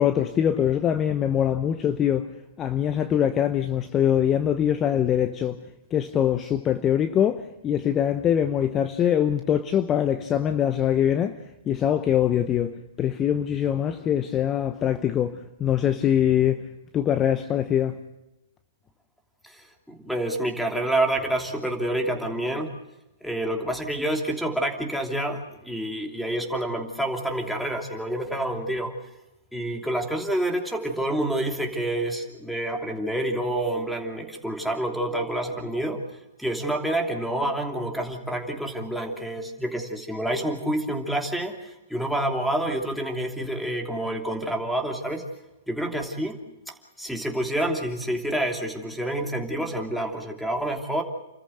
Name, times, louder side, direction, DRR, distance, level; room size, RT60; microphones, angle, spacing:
voice 1, 0.0-2.3 2.6-5.6 5.9-16.7 16.9-18.0, left 9 dB, 25° left, 0.9 m, -23 dB
voice 2, 19.4-22.7 23.2-28.9 29.5-36.0 36.4-45.2 45.7-46.4 46.7-51.0, right 1 dB, ahead, 2.9 m, -28 dB
29.5 x 14.0 x 7.8 m
hypercardioid pair, 125°, 0 cm